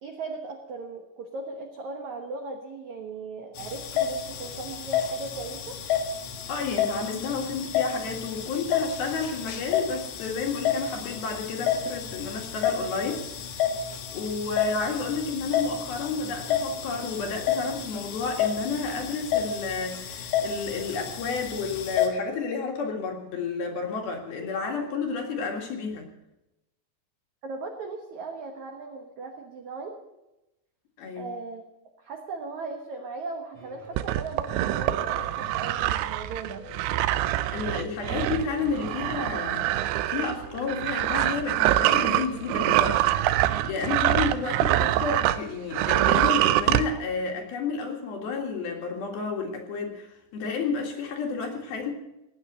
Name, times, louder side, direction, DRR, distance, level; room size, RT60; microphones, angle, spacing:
voice 1, 0.0-5.8 27.4-30.0 31.2-31.7 32.0-36.7, right 3 dB, 70° right, 3 dB, 1.8 m, -38 dB
sound 1, 3.6-22.1, left 8 dB, 90° left, 4.1 m, -30 dB
voice 2, 6.5-13.3 14.1-26.1 31.0-31.3 37.5-50.1 50.3-51.9, left 4 dB, 60° left, 2 dB, 3.4 m, -31 dB
sound 2, 33.5-43.8, left 1 dB, 35° right, 2.4 m, -47 dB
sound 3, 34.0-45.4 45.7-46.8, right 14 dB, 85° right, 2.3 m, -25 dB
18.0 x 9.2 x 7.9 m, 0.95 s
omnidirectional pair, 5.4 m